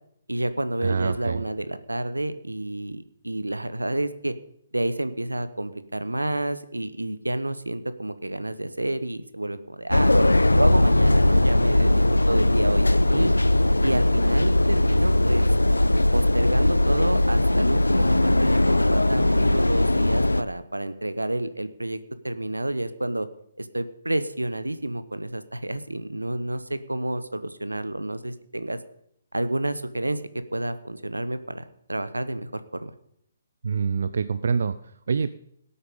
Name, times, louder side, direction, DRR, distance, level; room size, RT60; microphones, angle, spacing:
voice 1, 0.3-4.3 4.7-13.3 13.8-15.5 16.1-23.3 23.6-28.8 29.3-30.2 30.5-32.5 32.8-32.9, right 1 dB, 85° right, 13 dB, 1.0 m, -29 dB
voice 2, 0.8-1.4 33.6-35.3, right 5 dB, 60° right, 13 dB, 0.5 m, -26 dB
sound 1, 9.9-20.4, left 1 dB, 85° left, 0.5 m, -20 dB
18.5 x 8.7 x 5.3 m, 0.72 s
figure-of-eight pair, 130°, 0 cm